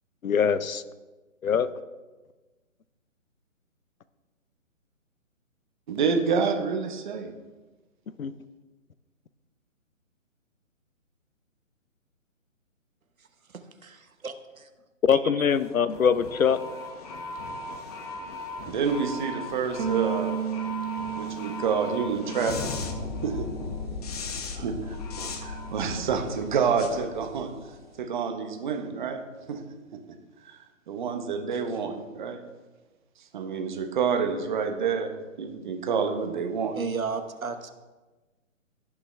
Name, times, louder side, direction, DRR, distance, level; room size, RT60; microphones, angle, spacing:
voice 1, 0.2-0.8 1.4-1.7 8.2-8.3 15.0-16.6, left 7 dB, 85° left, 14 dB, 0.8 m, -23 dB
voice 2, 5.9-7.3 18.7-20.4 21.2-22.9 23.2-23.5 24.5-27.5 28.0-29.2 29.5-29.6 29.9-30.0 30.4-32.4 33.3-36.8, right 6 dB, 35° right, 5 dB, 1.2 m, -28 dB
voice 3, 13.5-14.7 15.1-15.5 36.7-37.7, right 5 dB, 90° right, 8 dB, 1.3 m, -34 dB
sound 1, 15.5-27.9, left 3 dB, 30° left, 0.9 m, -37 dB
sound 2, 19.8-24.3 24.6-26.0, right 9 dB, 55° right, 0.7 m, -35 dB
17.0 x 6.0 x 3.4 m, 1.2 s
hypercardioid pair, 150°, 40 cm